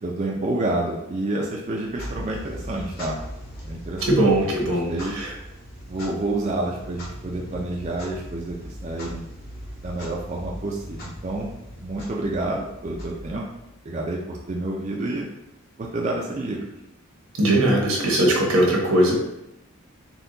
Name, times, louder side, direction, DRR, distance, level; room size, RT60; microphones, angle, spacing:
voice 1, 0.0-3.2 3.6-4.0 4.4-5.1 5.9-9.3 9.8-11.5 11.8-13.4 13.8-15.3 15.8-16.8, right 2 dB, 30° right, -2 dB, 0.4 m, -29 dB
Clock, 1.8-13.8, equal, 45° left, 1.1 m, -39 dB
voice 2, 4.0-5.3 17.4-19.1, right 1 dB, 80° right, -1 dB, 1.1 m, -20 dB
4.3 x 2.3 x 3.8 m, 0.87 s
head